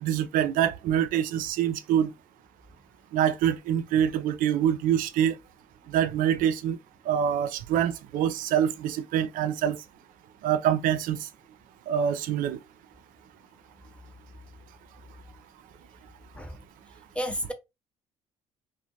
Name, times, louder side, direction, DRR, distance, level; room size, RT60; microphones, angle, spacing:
voice 1, 0.0-2.1 3.1-5.4 5.9-6.8 7.1-9.8 10.4-11.2 11.9-12.6, right 9 dB, 65° right, 0.4 m, -25 dB
voice 2, 17.1-17.5, equal, 10° left, 0.7 m, -31 dB
2.5 x 2.2 x 2.9 m
hypercardioid pair, 55°, 15 cm